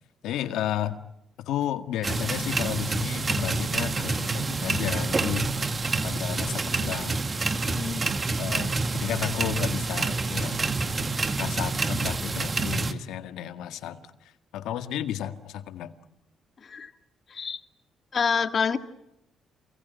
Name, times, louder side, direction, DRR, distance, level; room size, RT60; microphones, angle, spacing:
voice 1, 0.2-1.0 1.5-5.5 6.0-7.2 8.4-10.6 11.4-15.9, left 11 dB, 85° left, 9 dB, 1.8 m, -32 dB
sound 1, 2.0-12.9, right 3 dB, 30° right, 1.9 m, -28 dB
voice 2, 7.7-8.0 16.6-16.9 17.3-17.6 18.1-18.8, left 6 dB, 45° left, 8 dB, 2.1 m, -27 dB
28.5 x 22.0 x 9.6 m, 0.82 s
cardioid pair, 90°, 0 cm